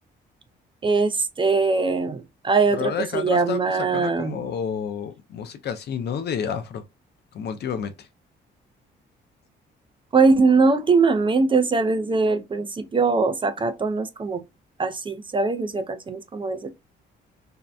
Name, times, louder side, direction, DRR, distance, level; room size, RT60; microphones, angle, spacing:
voice 1, 0.8-4.4 10.1-14.4 14.8-16.7, right 4 dB, 25° right, 0.4 m, -21 dB
voice 2, 2.7-6.8 7.3-8.1, left 7 dB, 55° left, 0.5 m, -30 dB
2.6 x 2.1 x 2.3 m
cardioid pair, 90°, 20 cm